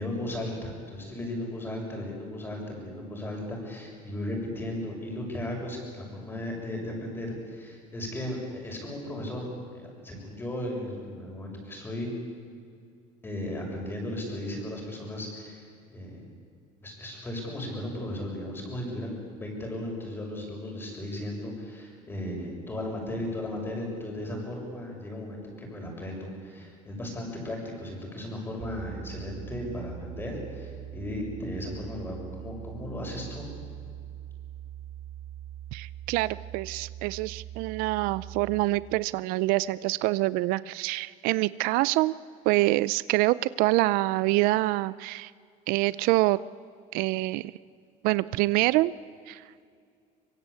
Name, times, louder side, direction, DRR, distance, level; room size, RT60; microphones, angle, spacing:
voice 1, 0.0-9.5 9.7-12.1 13.2-16.2 16.8-33.5, left 1 dB, 15° left, 0 dB, 7.0 m, -36 dB
sound 1, 28.6-38.6, right 11 dB, 50° right, 2.6 m, -42 dB
voice 2, 35.7-42.1 42.5-45.3 45.7-46.4 46.9-47.5 48.0-48.9 49.3-49.6, right 19 dB, 75° right, 18 dB, 0.5 m, -26 dB
24.5 x 23.0 x 8.5 m, 2.3 s
cardioid pair, 150°, 15 cm